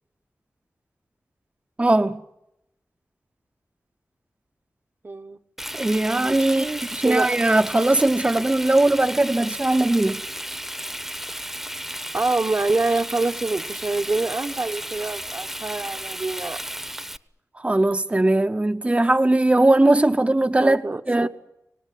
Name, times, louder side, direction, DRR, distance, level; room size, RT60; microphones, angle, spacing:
voice 1, 1.8-2.2 5.7-6.6 6.9-10.2 17.6-21.3, right 2 dB, 20° right, 0.9 m, -19 dB
voice 2, 5.0-5.4 6.5-7.6 12.1-16.6 20.6-21.3, right 3 dB, 40° right, 1.0 m, -26 dB
Frying (food), 5.6-17.2, equal, 5° right, 1.0 m, -33 dB
25.5 x 19.0 x 9.2 m
wide cardioid pair, 65°, 6 cm